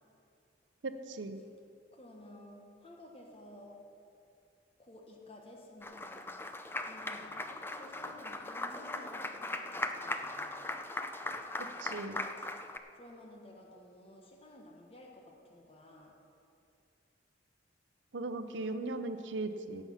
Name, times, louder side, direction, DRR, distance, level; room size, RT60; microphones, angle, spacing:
voice 1, 0.8-1.4 11.8-12.3 18.1-19.8, right 2 dB, 75° right, 9 dB, 0.7 m, -38 dB
voice 2, 1.9-3.8 4.8-6.4 6.8-10.7 12.4-12.5 12.9-16.1, left 1 dB, 30° left, 0 dB, 1.3 m, -53 dB
Applause, 5.8-12.8, left 2 dB, 10° left, 0.5 m, -39 dB
16.5 x 7.1 x 5.7 m, 2.6 s
head